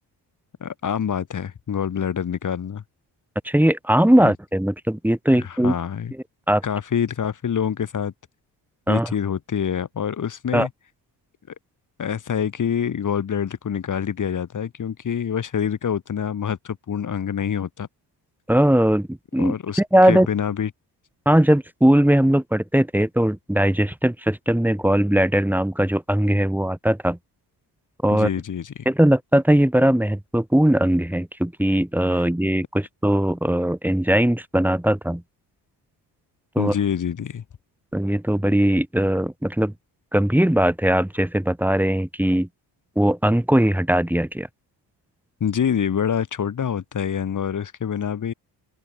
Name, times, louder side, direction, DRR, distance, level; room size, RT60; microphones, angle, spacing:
voice 1, 0.6-2.8 4.2-4.3 5.3-6.1 6.6-8.1 8.9-10.7 12.0-17.9 19.4-19.8 20.1-20.7 28.1-28.9 32.1-32.2 36.6-37.4 45.4-48.3, left 8 dB, 50° left, 2.6 m, -26 dB
voice 2, 3.4-5.7 6.5-6.6 8.9-9.1 10.5-10.7 18.5-20.3 21.2-27.2 28.0-28.3 28.8-35.2 36.5-36.7 37.9-39.7 40.1-42.5 43.0-44.5, right 1 dB, 5° right, 3.2 m, -19 dB
open air
cardioid pair, 115°, 40 cm